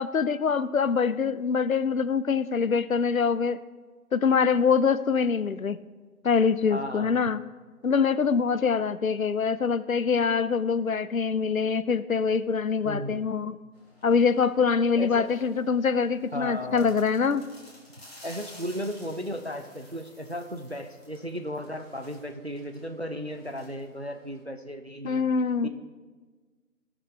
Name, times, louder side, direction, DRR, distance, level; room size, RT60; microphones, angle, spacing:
voice 1, 0.0-3.6 4.1-5.8 6.2-7.4 7.8-13.6 14.0-17.5 25.0-25.7, left 5 dB, 65° left, 16 dB, 0.5 m, -24 dB
voice 2, 6.7-7.2 12.8-13.2 15.0-15.3 16.3-16.9 18.2-25.3 25.6-25.7, equal, 45° right, 7 dB, 0.5 m, -35 dB
sound 1, 13.7-24.4, left 1 dB, 40° left, 2.3 m, -53 dB
17.5 x 6.1 x 3.2 m, 1.4 s
figure-of-eight pair, 170°, 45 cm